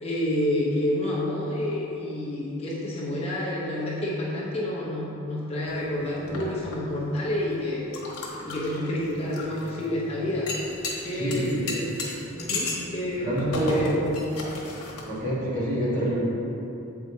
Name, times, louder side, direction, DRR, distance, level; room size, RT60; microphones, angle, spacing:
voice 1, 0.0-7.9 8.4-10.5 11.0-11.9 12.3-13.3 13.7-13.9, left 1 dB, 25° left, -7 dB, 0.8 m, -29 dB
sound 1, 5.7-15.4, left 2 dB, 85° left, 1.2 m, -36 dB
voice 2, 11.1-11.7 13.2-14.0 15.1-16.2, right 1 dB, 35° right, -8 dB, 1.4 m, -27 dB
7.6 x 4.7 x 2.7 m, 3.0 s
head